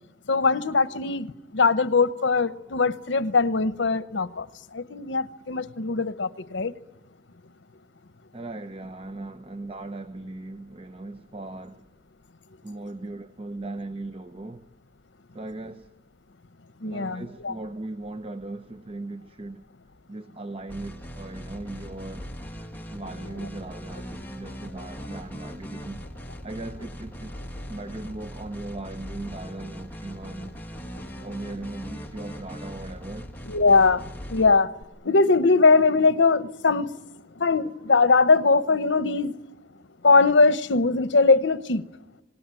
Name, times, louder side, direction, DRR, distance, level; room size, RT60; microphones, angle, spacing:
voice 1, 0.3-4.5 4.7-6.7 16.8-17.5 33.4-34.0 34.3-34.7 35.0-36.9 37.4-39.3 40.0-41.8, left 4 dB, 85° left, 0.9 m, -21 dB
voice 2, 8.3-11.9 12.6-14.7 15.3-15.9 16.8-19.7 20.1-22.3 22.9-26.1 26.4-30.5 31.2-33.3, right 2 dB, 30° right, 0.8 m, -38 dB
sound 1, 20.7-34.8, equal, 10° left, 1.7 m, -40 dB
27.0 x 19.5 x 9.1 m
head